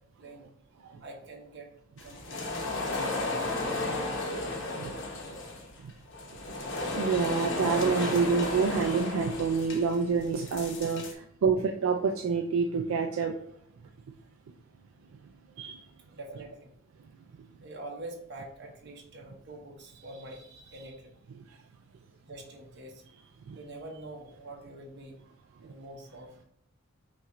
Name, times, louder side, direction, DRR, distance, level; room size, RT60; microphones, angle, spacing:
voice 1, 0.2-0.5 1.0-1.7 2.0-3.5 4.1-4.6 16.1-16.7 17.6-21.1 22.2-23.0 23.5-25.2 25.6-26.3, right 2 dB, 50° right, 0 dB, 0.9 m, -45 dB
sound 1, 2.0-11.1, left 2 dB, 60° left, 0.9 m, -33 dB
voice 2, 6.9-13.4 15.6-15.9 23.5-23.6, right 5 dB, 75° right, 5 dB, 0.3 m, -28 dB
5.7 x 2.5 x 3.0 m, 0.71 s
head